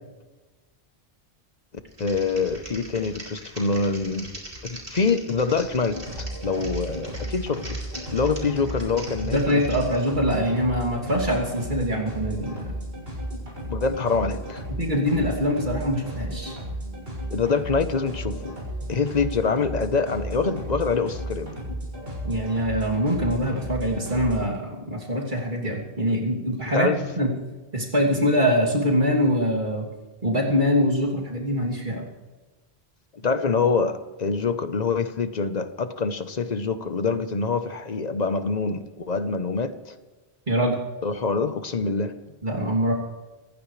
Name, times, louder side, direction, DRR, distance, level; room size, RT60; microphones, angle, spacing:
Typing, 1.9-10.0, right 1 dB, 65° right, 4.1 m, -42 dB
voice 1, 2.0-4.3 4.6-7.8 8.1-9.6 13.7-14.6 17.3-18.5 18.9-21.6 26.7-27.0 33.2-40.0 41.0-42.2, left 4 dB, 45° left, 10 dB, 1.0 m, -25 dB
sound 1, 5.9-24.4, equal, 90° right, 7.2 m, -34 dB
voice 2, 9.2-12.7 14.7-16.6 22.2-27.3 27.7-29.9 30.2-32.1 40.5-40.8 42.4-42.9, equal, 50° right, -2 dB, 3.0 m, -24 dB
26.5 x 15.5 x 3.3 m, 1.3 s
omnidirectional pair, 1.0 m